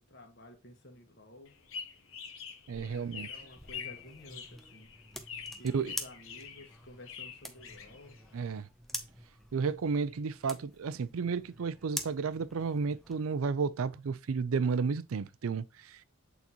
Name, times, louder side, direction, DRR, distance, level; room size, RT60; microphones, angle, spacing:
voice 1, 0.0-1.5 2.7-4.9 5.6-8.2, left 1 dB, 50° left, 1.5 m, -52 dB
sound 1, 1.5-8.5, left 7 dB, 70° left, 1.0 m, -46 dB
voice 2, 2.7-3.3 5.7-5.9 8.3-8.7 9.5-16.0, right 5 dB, 75° right, 0.4 m, -32 dB
sound 2, 2.9-13.2, equal, ahead, 0.5 m, -46 dB
8.3 x 4.1 x 2.9 m
head